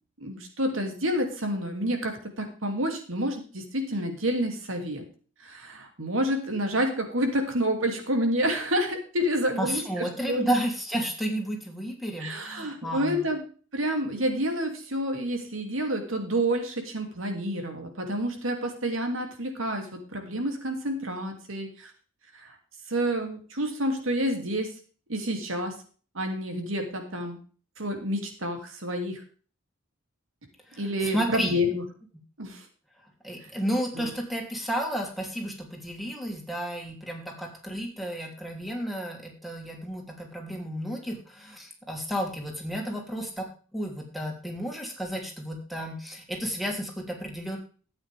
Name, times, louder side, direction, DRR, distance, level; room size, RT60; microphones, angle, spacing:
voice 1, 0.2-5.1 5.4-10.5 12.2-13.4 13.7-21.9 22.3-22.6 22.9-24.7 25.1-25.8 26.1-27.4 27.8-29.2 30.8-31.8 32.4-32.7 33.9-34.1, equal, 80° right, 5 dB, 2.8 m, -29 dB
voice 2, 9.6-13.3 30.7-31.6 33.2-43.5 43.7-47.6, equal, ahead, 0 dB, 3.1 m, -32 dB
13.0 x 8.9 x 3.5 m, 0.39 s
head